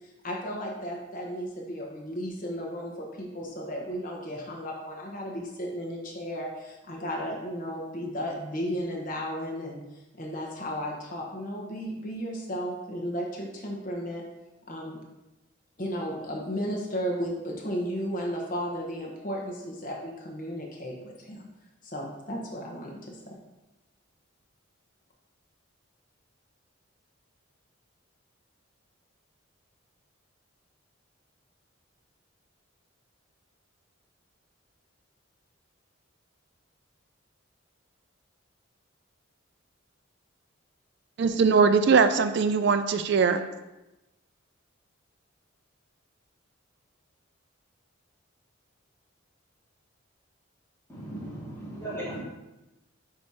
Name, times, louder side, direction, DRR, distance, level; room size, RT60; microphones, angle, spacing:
voice 1, 0.2-9.8 10.2-14.2 14.7-15.0 15.8-21.5 21.8-23.4, equal, 40° left, -1 dB, 1.0 m, -34 dB
voice 2, 41.2-43.5, right 5 dB, 55° right, 10 dB, 0.3 m, -21 dB
voice 3, 50.9-52.2, right 1 dB, 10° left, -6 dB, 1.6 m, -37 dB
8.5 x 2.8 x 4.8 m, 1.0 s
head